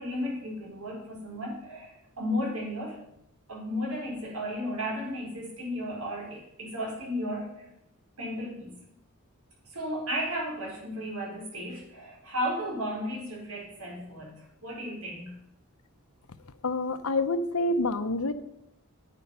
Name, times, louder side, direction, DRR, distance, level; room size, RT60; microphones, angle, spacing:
voice 1, 0.0-3.0 3.5-7.7 8.2-8.8 9.7-15.4, equal, 80° right, -2 dB, 4.7 m, -34 dB
voice 2, 16.6-18.3, left 2 dB, 85° left, 12 dB, 0.8 m, -27 dB
9.7 x 9.2 x 5.5 m, 0.80 s
head